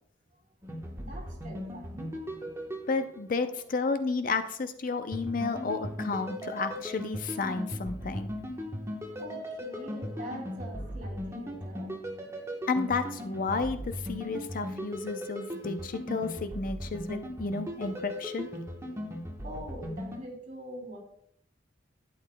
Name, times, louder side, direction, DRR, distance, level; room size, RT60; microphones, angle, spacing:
sound 1, 0.6-3.6 5.1-20.2, equal, 15° right, 1.0 m, -38 dB
voice 1, 1.0-2.2 3.6-3.7 9.2-12.0 19.4-21.0, right 1 dB, 45° right, -1 dB, 2.6 m, -43 dB
voice 2, 2.9-8.3 12.7-18.5, left 4 dB, 45° left, 9 dB, 0.5 m, -32 dB
11.5 x 8.7 x 2.2 m, 0.66 s
head